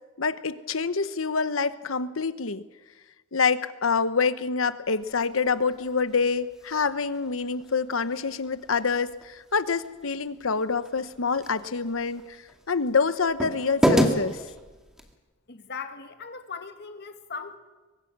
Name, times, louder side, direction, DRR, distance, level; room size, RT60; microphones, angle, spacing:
voice 1, 0.2-2.6 3.3-12.4 12.7-14.4, left 5 dB, 90° left, 13 dB, 1.0 m, -26 dB
sound 1, 4.8-15.2, equal, 5° right, 2.1 m, -32 dB
voice 2, 15.5-17.6, left 5 dB, 55° left, 7 dB, 1.8 m, -39 dB
23.5 x 20.5 x 6.1 m, 1.2 s
head